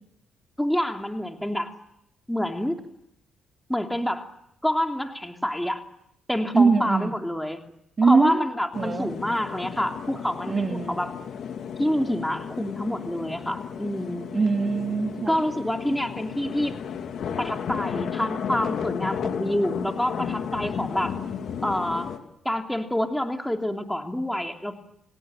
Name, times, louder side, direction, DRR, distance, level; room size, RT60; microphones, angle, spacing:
voice 1, 0.6-1.7 2.3-2.8 3.7-4.3 4.6-5.8 6.3-7.6 8.0-11.1 11.8-14.3 15.3-16.8 17.4-21.1 21.6-22.1 22.4-24.8, left 1 dB, 5° left, 4 dB, 3.1 m, -27 dB
voice 2, 6.5-7.2 8.0-8.5 8.8-9.1 10.5-11.0 14.3-15.4, right 4 dB, 35° right, 3 dB, 2.6 m, -22 dB
sound 1, 8.7-22.2, left 7 dB, 65° left, 2.9 m, -33 dB
30.0 x 17.5 x 9.0 m, 0.78 s
cardioid pair, 90°, 0 cm